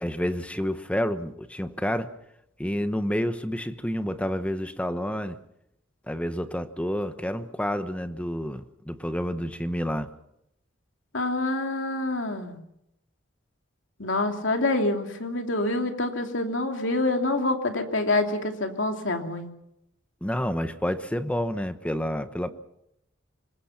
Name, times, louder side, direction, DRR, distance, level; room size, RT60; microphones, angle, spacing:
voice 1, 0.0-2.1 2.6-5.4 6.1-10.1 20.2-22.5, equal, 5° left, 1.0 m, -29 dB
voice 2, 11.1-12.6 14.0-19.5, left 2 dB, 70° left, 3.0 m, -26 dB
26.5 x 20.5 x 5.9 m
head